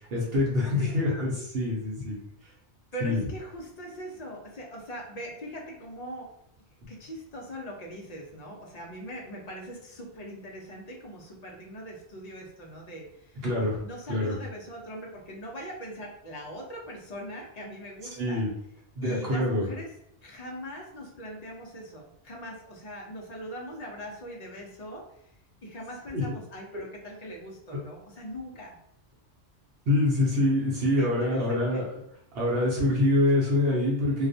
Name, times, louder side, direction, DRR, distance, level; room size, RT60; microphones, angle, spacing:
voice 1, 0.1-2.2 3.0-3.2 13.4-13.8 14.1-14.3 18.2-18.5 19.0-19.7 26.1-26.2 29.9-31.9 32.3-34.3, left 2 dB, 65° right, -5 dB, 0.8 m, -25 dB
voice 2, 2.9-6.3 6.9-13.4 13.8-18.4 19.0-19.9 20.2-25.3 25.6-28.7 31.0-31.8, equal, 55° left, -1 dB, 0.5 m, -41 dB
2.3 x 2.1 x 2.5 m, 0.76 s
omnidirectional pair, 1.1 m